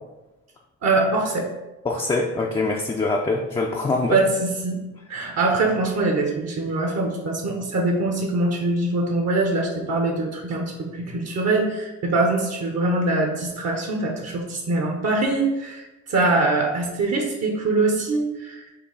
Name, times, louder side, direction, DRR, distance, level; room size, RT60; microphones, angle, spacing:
voice 1, 0.8-1.5 4.1-4.8 5.1-18.7, right 2 dB, 55° right, 1 dB, 0.9 m, -23 dB
voice 2, 1.8-4.2, left 3 dB, 20° left, 0 dB, 0.4 m, -24 dB
4.6 x 2.7 x 3.9 m, 1.0 s
cardioid pair, 90°, 30 cm